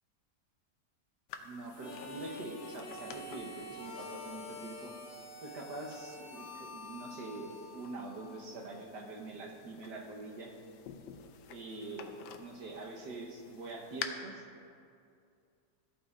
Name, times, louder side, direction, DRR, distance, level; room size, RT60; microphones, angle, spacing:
sound 1, 1.3-14.1, left 8 dB, 90° left, 1.2 m, -50 dB
voice 1, 1.4-4.9 5.4-10.5 11.5-12.1 12.4-14.4, right 3 dB, 80° right, -1 dB, 1.7 m, -44 dB
Harmonica, 1.7-8.6, left 2 dB, 20° left, 1.6 m, -47 dB
12.5 x 8.7 x 2.4 m, 2.4 s
omnidirectional pair, 1.8 m